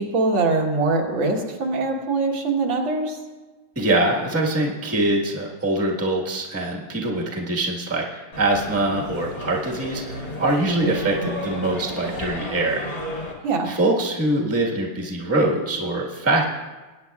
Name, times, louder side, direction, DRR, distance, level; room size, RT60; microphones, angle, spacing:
voice 1, 0.0-3.2 10.9-11.0 11.2-11.3 13.4-13.7, right 3 dB, 75° right, 0 dB, 2.1 m, -23 dB
voice 2, 3.7-12.9 13.6-16.5, right 2 dB, 10° right, -2 dB, 1.2 m, -23 dB
sound 1, 8.3-13.3, left 1 dB, 45° left, 2.7 m, -33 dB
21.0 x 9.3 x 2.4 m, 1.2 s
omnidirectional pair, 2.2 m